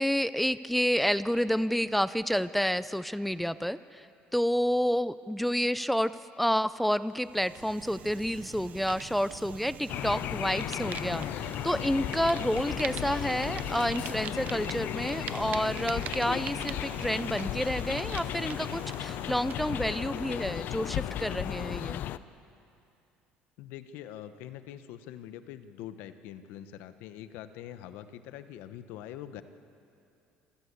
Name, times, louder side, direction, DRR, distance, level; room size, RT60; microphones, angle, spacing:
voice 1, 0.0-4.1 4.3-6.1 6.4-22.0, equal, ahead, 16 dB, 0.4 m, -29 dB
Fire, 7.2-20.5, right 9 dB, 50° right, 0.8 m, -43 dB
sound 1, 9.9-22.2, left 12 dB, 60° left, 0.6 m, -35 dB
voice 2, 23.6-29.4, left 11 dB, 80° left, 11 dB, 1.0 m, -44 dB
26.5 x 14.0 x 8.2 m, 2.7 s
cardioid pair, 120°, 3 cm